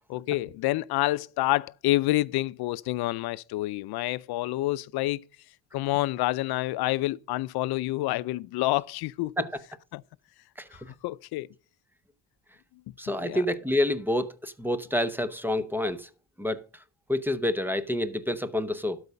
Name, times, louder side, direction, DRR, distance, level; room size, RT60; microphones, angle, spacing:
voice 1, 0.1-5.2 5.7-9.3 9.9-10.0 10.7-11.5 13.2-13.4, left 18 dB, 75° left, 0.5 m, -28 dB
voice 2, 13.0-16.1 16.4-16.8 17.1-19.0, left 1 dB, 5° right, 0.6 m, -28 dB
12.5 x 4.8 x 5.2 m
cardioid pair, 145°, 38 cm